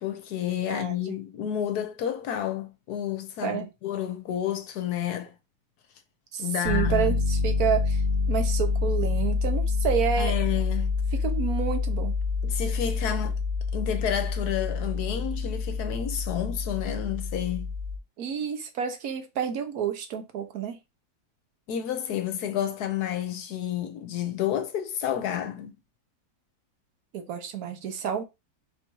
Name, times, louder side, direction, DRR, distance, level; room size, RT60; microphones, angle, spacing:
voice 1, 0.0-5.3 6.4-7.1 10.2-10.9 12.4-13.4 13.7-17.7 21.7-25.7, left 10 dB, 70° left, 1.2 m, -30 dB
voice 2, 0.7-1.2 3.4-3.7 6.3-8.0 8.3-10.3 11.2-12.1 18.2-20.8 27.1-28.2, right 8 dB, 65° right, 1.3 m, -29 dB
Piano, 6.6-18.0, left 4 dB, 45° right, 0.9 m, -27 dB
4.4 x 2.6 x 4.5 m
omnidirectional pair, 1.8 m